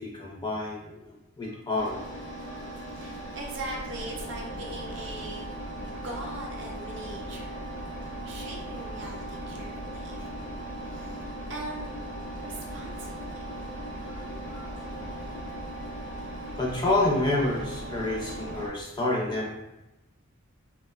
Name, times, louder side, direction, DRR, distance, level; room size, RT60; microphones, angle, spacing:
voice 1, 0.0-2.0 2.5-2.6 10.1-10.3 13.7-14.7 16.2-19.6, left 2 dB, 20° left, -3 dB, 0.4 m, -29 dB
Engine, 1.7-18.7, right 1 dB, 85° left, 0.7 m, -38 dB
voice 2, 2.9-5.5 5.9-7.8 8.2-10.5 10.9-11.9 12.4-13.6 16.2-16.5, right 2 dB, 55° right, -1 dB, 0.5 m, -41 dB
2.9 x 2.0 x 2.3 m, 0.94 s
head